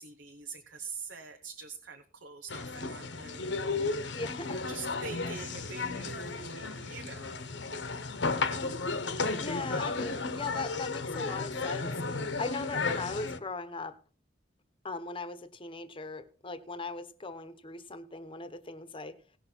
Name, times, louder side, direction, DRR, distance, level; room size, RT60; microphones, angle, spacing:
voice 1, 0.0-3.9 4.4-7.8, right 4 dB, 85° right, 5 dB, 1.2 m, -45 dB
sound 1, 2.5-13.4, left 3 dB, 80° left, 1.1 m, -34 dB
voice 2, 4.0-4.5 9.4-13.9 14.8-19.1, left 3 dB, 30° left, 11 dB, 1.0 m, -39 dB
18.0 x 6.1 x 4.5 m, 0.39 s
head